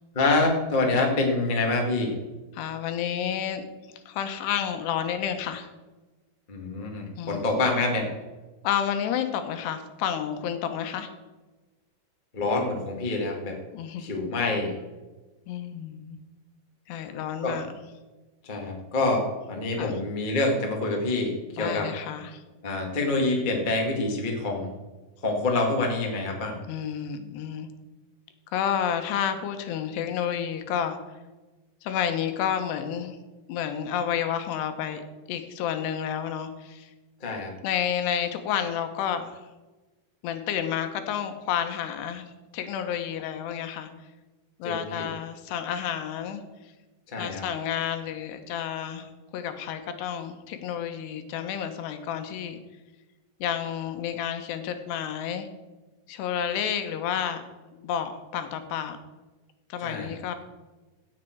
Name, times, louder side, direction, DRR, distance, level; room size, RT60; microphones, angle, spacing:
voice 1, 0.1-2.1 6.5-8.1 12.3-13.6 14.0-14.8 17.4-17.6 18.4-21.9 22.6-24.7 25.2-26.6 37.2-37.5 44.6-45.1 47.1-47.4 59.8-60.2, left 2 dB, 30° left, 0 dB, 0.9 m, -26 dB
voice 2, 2.5-3.7 4.1-5.7 7.2-7.4 8.6-11.1 13.7-14.1 15.5-16.2 16.9-17.7 19.8-20.0 21.6-22.4 26.7-27.7 28.5-31.0 31.8-33.2 33.5-35.0 35.3-36.9 37.6-39.4 40.2-42.3 42.5-43.9 44.6-46.4 47.2-52.6 53.4-55.5 56.1-57.4 57.7-59.0 59.7-60.4, left 9 dB, 80° left, 7 dB, 3.1 m, -30 dB
16.0 x 7.4 x 4.6 m, 1.2 s
omnidirectional pair, 4.8 m